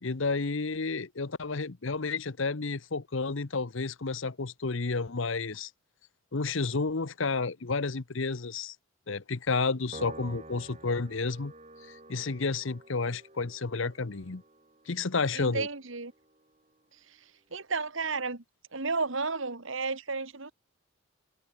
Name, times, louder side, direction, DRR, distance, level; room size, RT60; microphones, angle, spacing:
voice 1, 0.0-5.7 6.3-8.7 9.1-11.5 11.9-14.4 14.9-15.7, left 4 dB, 65° left, 0.9 m, -31 dB
Piano, 9.9-16.5, right 2 dB, 30° right, 4.5 m, -50 dB
voice 2, 15.3-16.1 17.5-18.4 18.7-20.5, right 4 dB, 70° right, 1.9 m, -32 dB
head